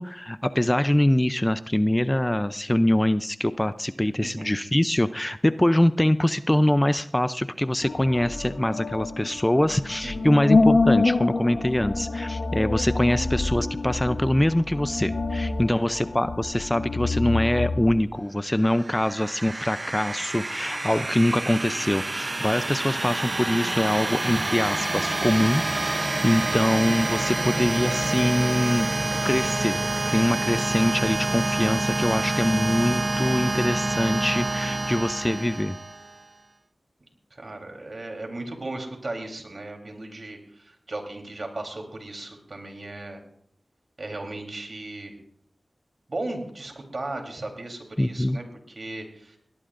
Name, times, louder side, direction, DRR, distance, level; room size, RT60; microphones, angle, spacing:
voice 1, 0.0-29.8 30.1-35.8 48.0-48.4, left 1 dB, 15° left, 12 dB, 0.5 m, -24 dB
voice 2, 4.2-4.5 10.0-10.4 15.7-16.1 37.3-43.2 44.0-45.1 46.1-49.4, right 2 dB, 60° right, 3 dB, 3.6 m, -36 dB
sound 1, 7.8-17.9, left 3 dB, 75° left, 0.9 m, -26 dB
sound 2, 18.6-36.2, right 2 dB, 45° right, 0.7 m, -27 dB
21.0 x 18.0 x 2.6 m, 0.69 s
wide cardioid pair, 50°, 0 cm